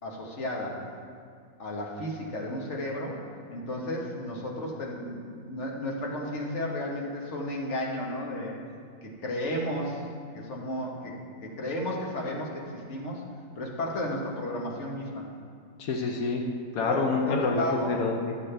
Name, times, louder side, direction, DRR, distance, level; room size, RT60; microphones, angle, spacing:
voice 1, 0.0-0.8 1.6-3.2 3.5-8.5 9.0-10.1 10.3-11.1 11.4-13.2 13.6-15.3 16.8-18.0, left 1 dB, 55° left, -2 dB, 1.5 m, -33 dB
voice 2, 15.8-16.4 16.7-18.4, left 4 dB, 85° left, 1 dB, 1.2 m, -27 dB
12.5 x 7.3 x 3.3 m, 2.2 s
omnidirectional pair, 1.5 m